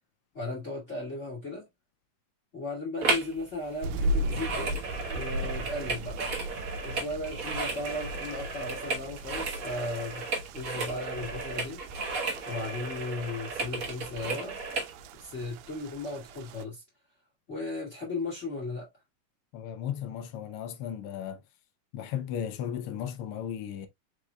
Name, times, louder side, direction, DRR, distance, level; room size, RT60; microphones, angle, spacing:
voice 1, 0.3-1.6 2.5-4.8 5.1-6.2 6.8-10.3 10.5-11.8 12.5-14.6 15.2-16.8 17.5-18.9, left 2 dB, 25° left, 1.9 m, -36 dB
sound 1, 3.0-3.4 3.6-14.9 15.4-15.5, right 3 dB, 45° right, 1.1 m, -34 dB
sound 2, 3.8-16.6, right 1 dB, 90° right, 2.0 m, -37 dB
voice 2, 19.5-21.4 21.9-23.9, left 9 dB, 85° left, 1.2 m, -35 dB
4.9 x 4.7 x 2.2 m
omnidirectional pair, 3.4 m